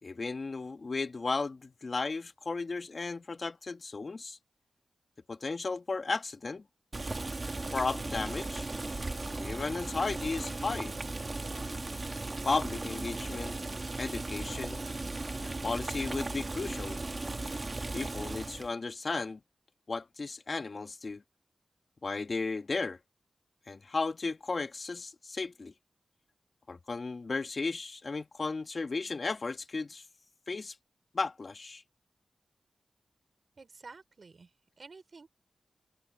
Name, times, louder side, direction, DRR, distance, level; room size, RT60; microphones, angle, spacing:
voice 1, 0.0-4.4 5.3-6.6 7.7-8.7 9.3-10.9 12.5-13.6 14.0-14.8 15.4-17.0 17.9-19.4 19.9-21.2 22.0-23.0 23.7-25.7 26.7-30.0 30.5-30.8 31.1-31.8, left 3 dB, 55° left, 2.0 m, -34 dB
Boiling, 6.9-18.7, right 2 dB, 40° right, 1.8 m, -37 dB
voice 2, 33.6-35.3, right 4 dB, 60° right, 5.2 m, -51 dB
cardioid pair, 55°, 0 cm